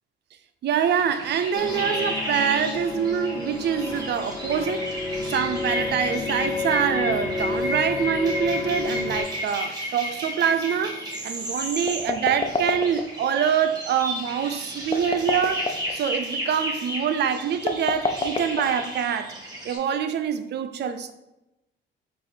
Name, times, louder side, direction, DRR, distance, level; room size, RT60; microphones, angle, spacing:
voice 1, 0.6-4.9 5.3-19.3 19.6-21.1, right 8 dB, 60° right, 0.4 m, -25 dB
sound 1, 0.8-19.8, equal, 20° right, 1.3 m, -33 dB
sound 2, 1.5-9.2, left 3 dB, 80° left, 0.8 m, -30 dB
sound 3, 11.9-13.3 14.8-16.0 17.6-19.1, left 3 dB, 30° left, 0.5 m, -27 dB
4.6 x 2.5 x 4.3 m
cardioid pair, 90°, 20 cm